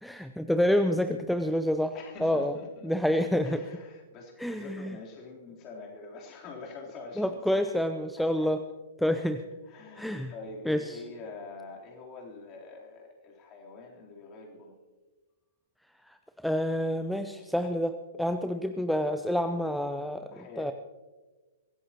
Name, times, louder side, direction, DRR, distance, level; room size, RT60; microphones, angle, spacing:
voice 1, 0.0-2.6 2.8-3.6 4.4-5.0 7.2-8.6 9.0-9.4 10.0-10.3 10.7-11.0 16.1-16.2 16.4-20.7, equal, ahead, 9 dB, 0.6 m, -28 dB
voice 2, 1.9-2.9 3.4-7.7 8.2-8.5 9.7-14.8 20.3-20.7, left 3 dB, 30° left, -1 dB, 3.5 m, -45 dB
23.5 x 16.5 x 3.0 m, 1.3 s
figure-of-eight pair, 110°, 0 cm